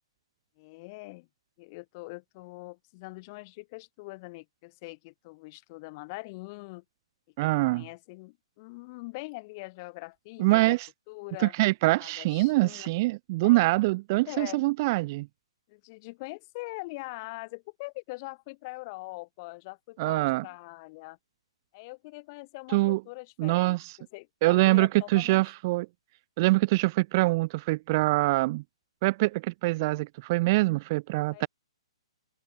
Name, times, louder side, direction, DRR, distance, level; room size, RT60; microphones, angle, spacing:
voice 1, 0.6-1.3 1.6-6.8 7.7-10.8 11.1-11.5 12.0-12.9 13.4-13.6 14.3-14.6 15.7-21.2 21.7-23.8 24.1-25.4 31.3-31.5, left 25 dB, 35° left, 2.6 m, -42 dB
voice 2, 7.4-7.9 10.4-10.9 11.4-15.3 20.0-20.5 22.7-23.0 23.4-23.9 24.4-25.9 26.4-28.6 29.0-31.5, right 21 dB, 35° right, 0.4 m, -24 dB
figure-of-eight pair, 125°, 3 cm